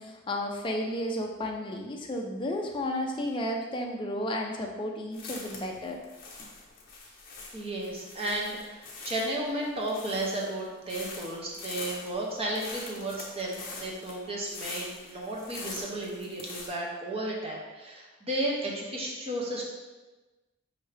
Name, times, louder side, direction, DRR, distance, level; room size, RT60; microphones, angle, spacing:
voice 1, 0.0-6.0, left 1 dB, 20° left, 1 dB, 0.4 m, -32 dB
sound 1, 5.1-16.7, left 3 dB, 40° left, 0.8 m, -43 dB
voice 2, 7.5-19.6, right 1 dB, 25° right, -3 dB, 0.7 m, -33 dB
5.7 x 2.7 x 3.2 m, 1.2 s
head